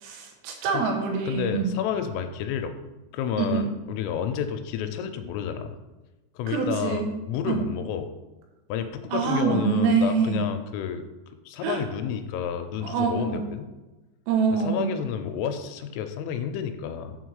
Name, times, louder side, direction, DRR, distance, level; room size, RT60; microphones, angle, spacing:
voice 1, 0.0-1.7 3.4-3.6 6.5-7.1 7.5-7.6 9.1-10.4 11.6-11.8 12.8-13.4 14.3-14.9, right 5 dB, 80° right, 1 dB, 3.9 m, -25 dB
voice 2, 1.3-2.7 3.1-5.7 6.4-8.1 8.7-11.0 11.5-13.7 14.5-17.2, left 8 dB, 85° left, 8 dB, 3.1 m, -30 dB
7.8 x 4.5 x 6.4 m, 1.1 s
omnidirectional pair, 5.9 m